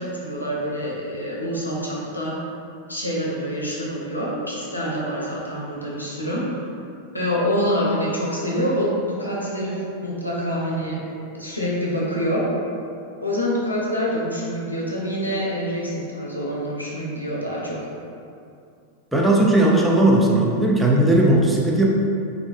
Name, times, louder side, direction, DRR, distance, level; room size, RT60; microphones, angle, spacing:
voice 1, 0.0-2.4 2.9-6.5 7.1-11.0 11.3-12.5 13.2-17.9, equal, 85° left, -5 dB, 0.6 m, -26 dB
voice 2, 19.1-21.9, right 1 dB, 5° right, -3 dB, 0.4 m, -17 dB
3.1 x 2.6 x 2.3 m, 2.5 s
figure-of-eight pair, 90°, 0 cm